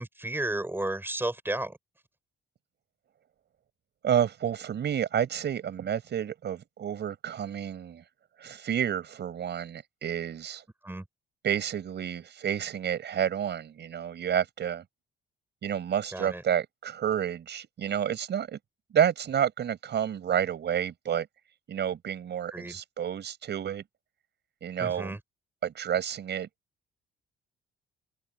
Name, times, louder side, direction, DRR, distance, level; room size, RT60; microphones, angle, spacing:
voice 1, 0.0-1.8 10.8-11.0 16.1-16.4 22.5-22.8 24.8-25.2, right 1 dB, 10° right, 5.9 m, -33 dB
voice 2, 4.0-8.0 8.4-10.6 11.4-14.8 15.6-18.6 18.9-21.3 21.7-23.8 24.6-25.1 25.6-26.5, right 9 dB, 60° right, 5.5 m, -30 dB
cardioid pair, 90°, 20 cm